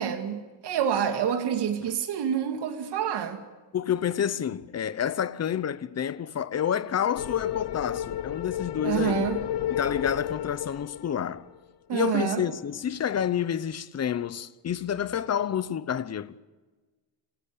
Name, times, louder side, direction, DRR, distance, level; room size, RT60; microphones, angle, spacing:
voice 1, 0.0-3.4 8.8-9.4 11.9-12.4, right 8 dB, 65° right, 2.4 m, -27 dB
voice 2, 3.7-9.3 9.7-11.5 11.9-16.4, left 9 dB, 35° left, 0.8 m, -29 dB
sound 1, 7.2-11.6, left 11 dB, 65° left, 0.9 m, -32 dB
27.0 x 17.5 x 8.7 m
cardioid pair, 155°, 43 cm